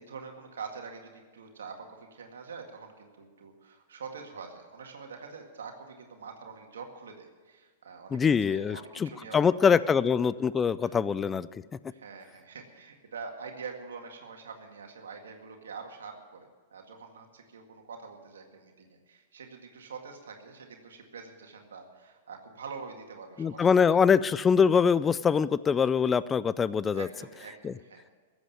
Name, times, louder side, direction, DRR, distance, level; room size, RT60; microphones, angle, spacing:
voice 1, 0.0-9.9 10.8-10.9 11.9-24.1 26.9-28.0, right 5 dB, 90° right, 3 dB, 1.9 m, -45 dB
voice 2, 8.1-11.5 23.4-27.1 27.6-27.7, left 6 dB, 20° left, 17 dB, 0.4 m, -24 dB
15.0 x 8.0 x 9.1 m, 1.5 s
hypercardioid pair, 130°, 0 cm